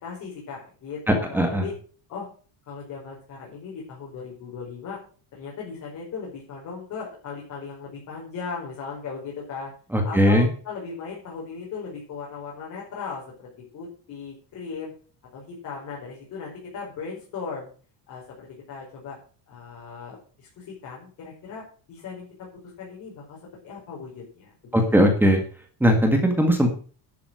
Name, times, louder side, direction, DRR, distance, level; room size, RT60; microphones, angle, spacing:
voice 1, 0.0-1.7 2.1-2.3 2.7-5.0 5.3-9.7 10.0-13.5 13.7-14.9 15.3-17.7 18.1-19.2 19.5-23.4 23.6-25.0, left 5 dB, 40° left, -3 dB, 5.3 m, -37 dB
voice 2, 1.1-1.7 9.9-10.5 24.7-25.4 25.8-26.7, equal, 5° right, 3 dB, 1.8 m, -19 dB
11.5 x 8.7 x 6.3 m, 0.39 s
cardioid pair, 175°, 45 cm